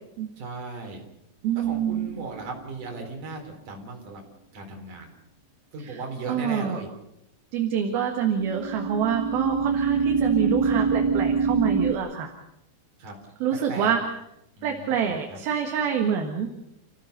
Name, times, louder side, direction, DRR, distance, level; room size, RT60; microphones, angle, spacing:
voice 1, 0.4-1.0 1.6-3.4 3.7-4.2 4.5-5.1 5.7-6.9 13.0-13.2 13.7-13.9 14.6-15.4, right 3 dB, 45° right, 2 dB, 5.3 m, -37 dB
voice 2, 1.4-2.1 5.8-6.0 6.3-6.8 7.5-12.3 13.4-14.0 14.6-16.5, right 8 dB, 65° right, 3 dB, 3.3 m, -26 dB
sound 1, 1.6-2.3 8.4-11.9, right 5 dB, 20° right, 0.9 m, -25 dB
29.5 x 15.5 x 6.7 m, 0.83 s
omnidirectional pair, 5.1 m